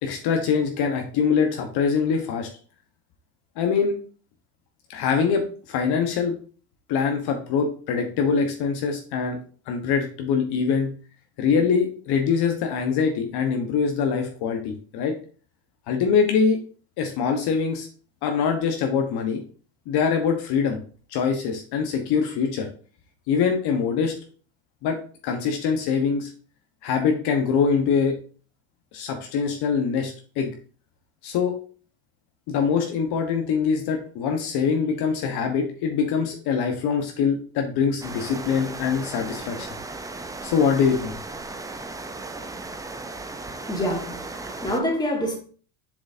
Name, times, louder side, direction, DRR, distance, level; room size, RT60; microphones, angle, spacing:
voice 1, 0.0-2.5 3.6-3.9 4.9-6.3 6.9-9.4 9.7-10.9 11.4-15.1 15.9-16.6 17.0-17.9 18.2-19.4 19.9-20.8 21.1-22.7 23.3-24.1 24.8-25.0 25.2-26.3 26.8-28.1 28.9-30.5 31.2-31.5 32.5-39.8 40.4-41.2, left 6 dB, 55° left, 1.2 m, -23 dB
sound 1, 38.0-44.8, right 3 dB, 10° right, 0.5 m, -36 dB
voice 2, 43.6-45.4, equal, 10° left, 2.1 m, -27 dB
7.0 x 5.0 x 2.7 m
supercardioid pair, 95°, 45 cm